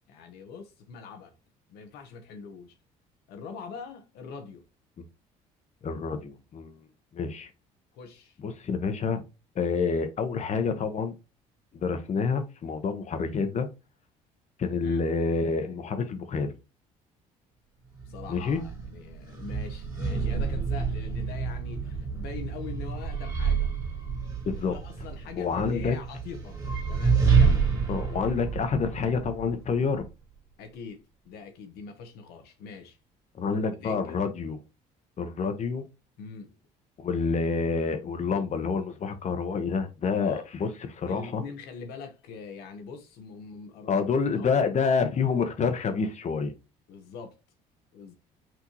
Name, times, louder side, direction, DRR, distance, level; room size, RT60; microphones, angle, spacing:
voice 1, 0.1-1.3 1.7-2.7 3.3-4.6 7.9-8.4 14.7-15.0 18.1-23.7 24.7-26.6 26.9-27.7 30.6-33.0 33.5-34.2 36.2-36.6 40.2-40.4 41.1-44.0 44.3-44.9 46.9-47.4 47.9-48.1, left 5 dB, 75° left, 1.1 m, -43 dB
voice 2, 5.8-6.7 7.1-7.5 8.4-9.2 9.5-11.1 11.7-13.7 14.6-16.5 18.3-18.6 24.5-24.8 25.4-26.0 27.9-30.0 33.4-34.6 35.2-35.9 37.0-41.4 43.9-46.5, left 5 dB, 45° left, 1.1 m, -28 dB
sound 1, 17.9-30.1, right 5 dB, 20° right, 2.2 m, -28 dB
6.1 x 2.7 x 3.0 m
supercardioid pair, 75°, 16 cm